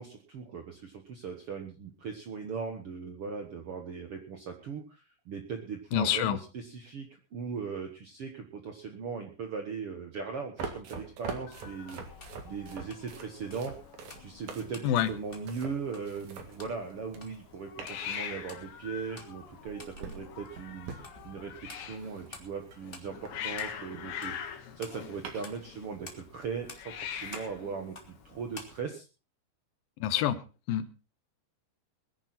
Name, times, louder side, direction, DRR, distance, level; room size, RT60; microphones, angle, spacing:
voice 1, 0.0-12.0 12.4-13.7 14.2-29.1, right 5 dB, 90° right, 4 dB, 1.2 m, -39 dB
voice 2, 5.9-6.4 14.8-15.1 30.0-30.4 30.7-30.9, left 11 dB, 70° left, 12 dB, 2.4 m, -27 dB
sound 1, 10.6-17.5 17.8-18.7 19.5-23.7 23.9-25.7 26.0-26.1 26.8-26.9 27.2-27.4, right 5 dB, 50° right, 2.8 m, -45 dB
Hiss, 11.5-28.8, left 9 dB, 90° left, 3.9 m, -44 dB
sound 2, 12.0-28.8, left 2 dB, 25° left, 1.1 m, -53 dB
21.0 x 10.5 x 4.2 m, 0.33 s
omnidirectional pair, 4.9 m